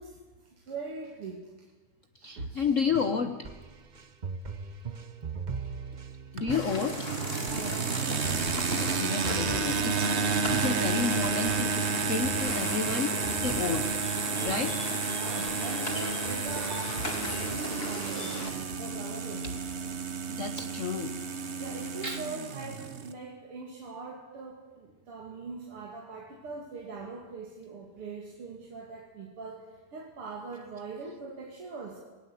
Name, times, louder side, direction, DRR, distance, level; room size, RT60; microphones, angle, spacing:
voice 1, 0.0-1.5 2.2-2.5 7.5-7.9 14.4-14.7 15.1-18.4 18.8-19.5 21.6-32.0, right 4 dB, 85° right, 0 dB, 3.4 m, -41 dB
voice 2, 2.1-3.5 6.3-7.1 8.7-11.7 12.1-13.9 14.4-14.7 20.3-21.2 22.0-22.2, left 5 dB, 45° left, 7 dB, 1.1 m, -31 dB
sound 1, 2.9-15.1 15.5-15.7 16.0-18.1 18.5-19.0 19.5-19.6, right 5 dB, 55° right, 0.5 m, -41 dB
sound 2, 6.4-23.1, right 5 dB, 40° right, 1.2 m, -31 dB
sound 3, 6.5-18.5, left 1 dB, 25° left, 4.0 m, -38 dB
19.5 x 19.0 x 8.5 m, 1.3 s
omnidirectional pair, 2.4 m